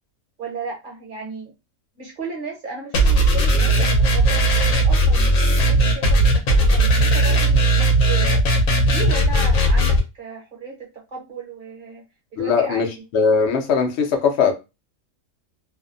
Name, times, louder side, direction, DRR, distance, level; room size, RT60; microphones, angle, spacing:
voice 1, 0.4-1.5 2.0-12.0 12.3-12.9, right 4 dB, 40° right, 0.9 m, -35 dB
sound 1, 2.9-10.0, right 1 dB, 80° left, 1.1 m, -17 dB
voice 2, 12.4-12.9 13.1-14.5, left 5 dB, 65° left, 0.8 m, -19 dB
2.6 x 2.1 x 2.5 m
omnidirectional pair, 1.4 m